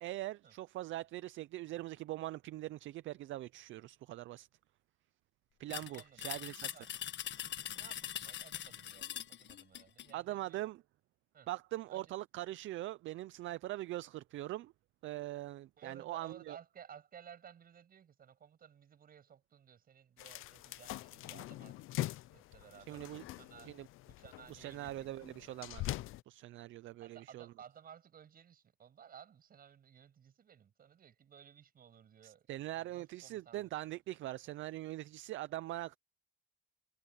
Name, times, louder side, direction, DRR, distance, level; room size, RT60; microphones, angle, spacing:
voice 1, 0.0-4.5 5.6-6.7 10.1-10.8 11.5-14.7 15.0-16.6 22.9-23.2 23.7-23.9 24.5-27.5 32.2-36.0, right 15 dB, 70° right, 0.5 m, -42 dB
sound 1, 5.7-10.1, left 11 dB, 60° left, 1.5 m, -42 dB
voice 2, 5.9-6.9 7.4-10.6 11.3-11.5 11.9-12.2 15.8-23.0 23.3-23.8 24.1-25.1 27.0-33.7, right 8 dB, 45° right, 7.8 m, -57 dB
sound 2, 20.2-26.2, left 16 dB, 80° left, 0.6 m, -43 dB
cardioid pair, 150°, 21 cm